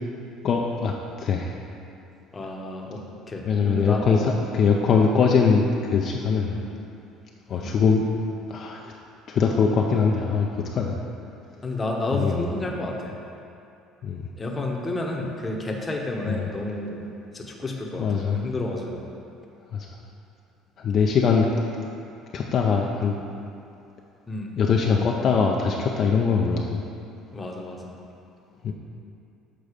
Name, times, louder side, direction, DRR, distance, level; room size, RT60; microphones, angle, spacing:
voice 1, 0.4-0.9 1.2-1.5 3.5-6.5 7.5-8.1 8.5-8.9 9.3-11.0 12.1-12.5 14.0-14.2 16.3-16.4 18.0-18.4 19.7-19.9 20.8-21.5 22.3-23.2 24.6-26.8 28.6-28.7, left 5 dB, 50° left, 0 dB, 0.5 m, -22 dB
voice 2, 2.3-4.4 6.5-6.7 7.6-7.7 11.6-13.1 14.4-17.0 17.3-19.0 24.3-24.5 27.3-27.9, left 2 dB, 20° left, 0 dB, 0.9 m, -31 dB
6.7 x 3.9 x 4.9 m, 2.6 s
supercardioid pair, 105°, 0 cm